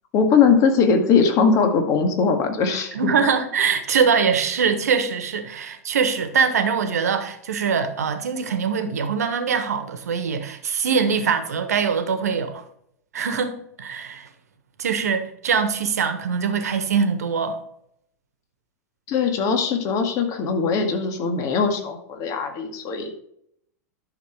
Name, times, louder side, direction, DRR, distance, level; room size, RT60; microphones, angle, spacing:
voice 1, 0.1-3.0 19.1-23.1, left 5 dB, 40° left, 2.0 m, -20 dB
voice 2, 2.9-12.6 13.1-14.3 14.8-17.6, right 6 dB, 70° right, 1.3 m, -23 dB
11.5 x 6.5 x 4.8 m
figure-of-eight pair, 90°, 9 cm